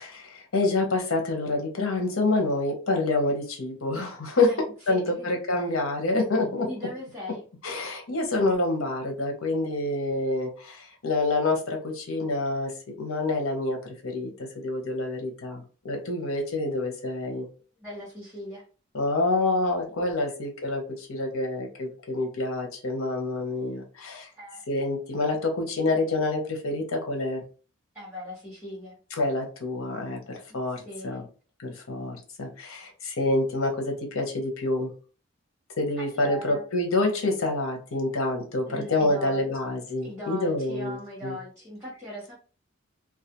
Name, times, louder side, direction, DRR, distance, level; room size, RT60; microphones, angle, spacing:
voice 1, 0.0-4.5 4.9-6.7 7.6-17.5 18.9-24.3 24.7-27.4 29.2-31.2 31.6-34.9 35.8-41.4, left 2 dB, 85° left, 3 dB, 0.8 m, -27 dB
voice 2, 4.9-5.3 6.6-7.4 17.8-18.6 24.4-24.6 27.9-29.0 30.5-31.2 36.0-36.6 38.7-39.4 40.0-42.3, left 1 dB, 10° right, -9 dB, 0.9 m, -39 dB
2.3 x 2.3 x 2.8 m, 0.38 s
head